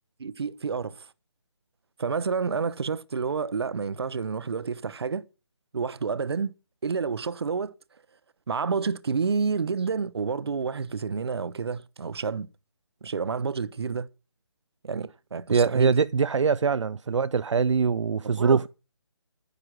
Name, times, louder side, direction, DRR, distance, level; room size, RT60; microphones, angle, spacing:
voice 1, 0.2-1.1 2.0-5.2 5.7-6.5 6.8-7.7 8.5-12.5 13.0-14.1 14.8-15.9 18.3-18.7, right 5 dB, 60° right, 0.8 m, -29 dB
voice 2, 15.5-18.7, right 5 dB, 85° right, 0.5 m, -23 dB
10.0 x 9.5 x 6.1 m
figure-of-eight pair, 165°, 15 cm